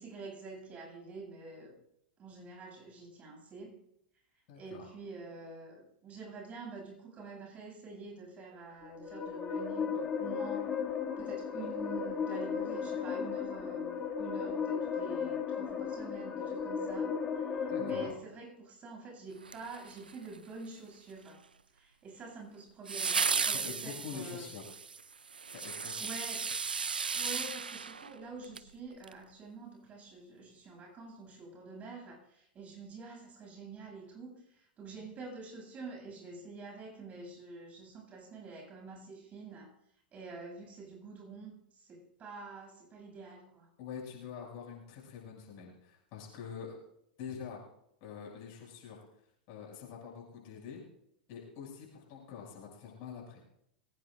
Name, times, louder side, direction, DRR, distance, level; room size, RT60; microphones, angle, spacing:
voice 1, 0.0-1.8 2.2-3.8 4.5-10.7 11.2-17.1 17.6-21.5 21.7-24.5 26.0-26.5 27.1-39.7 40.1-43.7, right 3 dB, 30° right, 1 dB, 7.9 m, -47 dB
voice 2, 4.5-4.9 17.7-18.1 23.5-24.6 25.5-26.1 43.8-46.8 47.2-47.6 48.0-49.0 49.5-50.8 51.3-53.4, left 7 dB, 50° left, -2 dB, 6.9 m, -45 dB
sound 1, 8.7-18.1, left 6 dB, 25° left, 2.4 m, -35 dB
sound 2, 19.4-20.4 22.9-28.7 29.0-29.1, right 5 dB, 85° right, 0.6 m, -35 dB
22.5 x 18.0 x 2.6 m, 0.76 s
hypercardioid pair, 95°, 5 cm